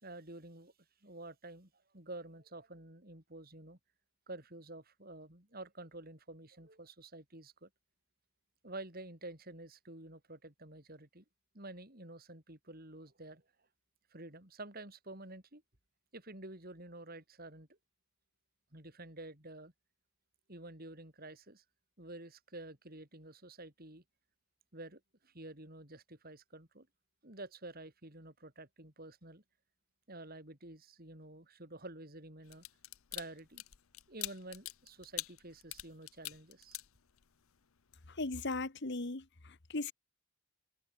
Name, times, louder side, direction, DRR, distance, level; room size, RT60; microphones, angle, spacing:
voice 1, 0.0-0.7 1.0-3.8 4.3-7.7 8.6-11.2 11.5-13.4 14.1-15.6 16.1-17.7 18.7-19.7 20.5-21.6 22.0-24.0 24.7-26.9 27.2-29.4 30.1-32.6 33.1-33.6 34.1-36.8, right 2 dB, 45° right, 4.1 m, -50 dB
sound 1, 32.5-37.5 37.9-38.1, left 17 dB, 70° left, 0.7 m, -44 dB
voice 2, 38.1-39.9, left 2 dB, 50° left, 1.3 m, -38 dB
open air
head